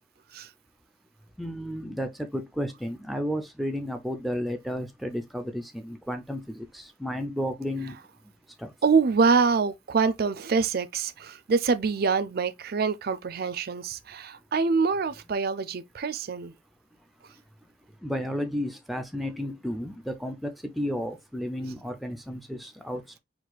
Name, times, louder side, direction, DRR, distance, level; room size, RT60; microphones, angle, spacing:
voice 1, 1.4-8.0 8.6-8.7 18.0-23.2, equal, ahead, 0.5 m, -32 dB
voice 2, 8.8-16.5, right 5 dB, 55° right, 0.5 m, -25 dB
4.6 x 2.4 x 4.0 m
head